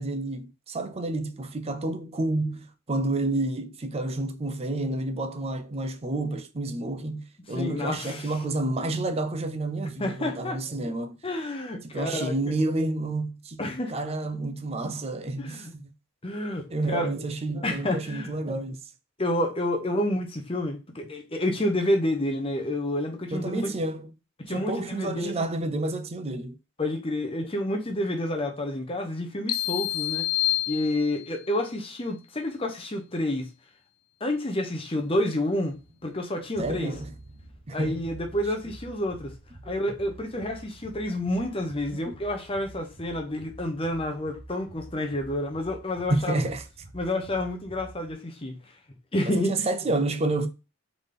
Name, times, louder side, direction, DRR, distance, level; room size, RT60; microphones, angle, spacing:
voice 1, 0.0-11.2 11.8-13.6 13.9-15.8 16.7-18.8 23.3-24.1 24.5-26.6 36.6-37.1 37.7-38.0 39.7-39.8 40.4-40.5 42.1-42.2 46.1-46.6 49.3-50.5, right 2 dB, 30° right, 0.5 m, -29 dB
voice 2, 7.5-8.3 10.0-10.6 11.2-12.4 13.6-13.9 15.4-15.7 16.2-17.1 17.6-18.3 19.2-23.7 24.4-25.3 26.8-30.3 30.7-33.5 34.2-35.7 36.0-36.9 37.7-39.3 39.6-46.4 46.9-48.6 49.1-49.5, left 1 dB, 25° left, 0.9 m, -29 dB
sound 1, 29.5-31.4, left 16 dB, 90° left, 0.5 m, -28 dB
sound 2, 35.6-48.1, right 1 dB, 85° right, 1.5 m, -48 dB
4.0 x 3.8 x 3.4 m
head